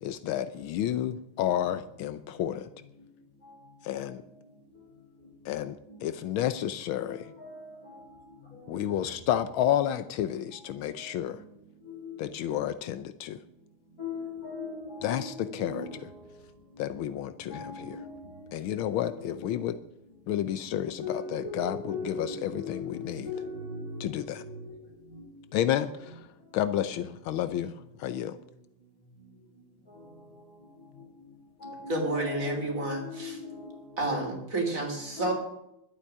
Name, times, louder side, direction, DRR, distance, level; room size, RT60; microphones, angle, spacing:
voice 1, 0.0-2.7 3.8-4.2 5.4-7.3 8.7-11.4 12.2-13.4 15.0-16.1 16.8-18.0 18.5-19.8 20.3-23.3 24.0-24.4 25.5-26.3 26.5-28.4, left 11 dB, 80° left, 1.5 m, -31 dB
voice 2, 7.0-7.7 11.9-12.2 14.0-16.0 17.5-18.1 19.4-19.5 21.0-24.1 24.3-24.6 25.1-25.2 31.6-33.7 35.2-35.3, left 3 dB, 45° left, 5.8 m, -39 dB
voice 3, 31.9-33.4 34.0-35.3, right 1 dB, 40° right, 3.5 m, -30 dB
12.0 x 8.4 x 10.0 m
omnidirectional pair, 2.2 m